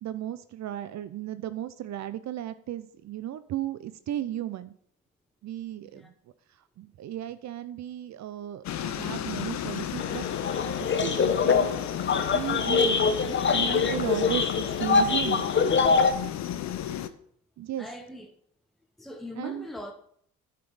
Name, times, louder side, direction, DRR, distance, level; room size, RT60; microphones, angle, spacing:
voice 1, 0.0-4.7 5.4-6.1 6.8-11.9 12.1-15.5 17.6-17.9 19.4-19.7, right 12 dB, 65° right, 0.6 m, -35 dB
sound 1, 8.6-17.1, left 11 dB, 65° left, 0.7 m, -33 dB
sound 2, 10.0-16.1, left 5 dB, 40° left, 1.0 m, -24 dB
voice 2, 17.8-18.3 19.0-19.9, left 1 dB, ahead, 1.1 m, -41 dB
9.4 x 6.0 x 4.8 m
cardioid pair, 90°, 30 cm